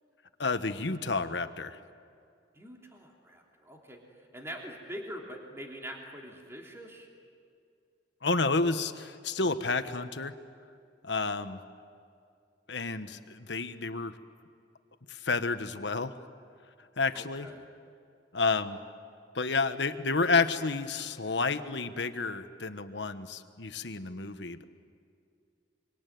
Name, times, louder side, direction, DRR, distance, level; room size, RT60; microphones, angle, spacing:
voice 1, 0.4-1.8 8.2-10.3 11.0-11.6 12.7-14.2 15.1-16.2 17.0-17.5 18.3-18.8 19.3-24.6, left 3 dB, 70° left, 9 dB, 1.3 m, -30 dB
voice 2, 2.5-4.0 4.3-7.1 17.1-17.6, equal, 15° right, 0 dB, 3.2 m, -44 dB
25.5 x 25.0 x 9.4 m, 2.4 s
head